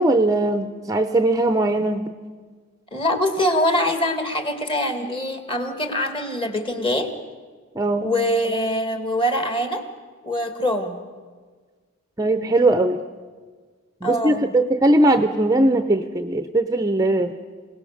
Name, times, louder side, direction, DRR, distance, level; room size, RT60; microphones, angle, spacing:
voice 1, 0.0-2.1 7.8-8.1 12.2-13.0 14.0-17.3, right 2 dB, 15° right, 8 dB, 0.6 m, -19 dB
voice 2, 2.9-7.1 8.0-9.8 10.2-11.0 14.0-14.4, left 1 dB, 25° left, 7 dB, 1.8 m, -23 dB
27.0 x 18.0 x 6.5 m, 1.5 s
head